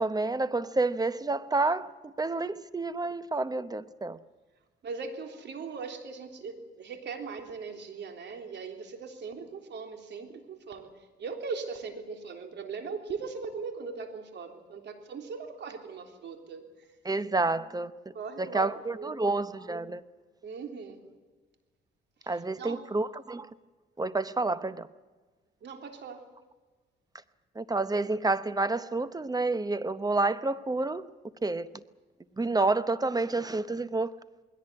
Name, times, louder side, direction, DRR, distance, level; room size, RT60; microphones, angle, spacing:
voice 1, 0.0-4.2 17.0-20.0 22.3-23.5 24.0-24.9 27.6-31.1 31.4-31.7 32.4-34.1, right 3 dB, 20° right, 0.9 m, -29 dB
voice 2, 4.8-16.7 18.1-18.7 19.0-19.2 20.4-21.0 22.2-22.8 25.6-26.3, right 5 dB, 60° right, 3.6 m, -39 dB
21.0 x 17.5 x 9.7 m
cardioid pair, 90°, 20 cm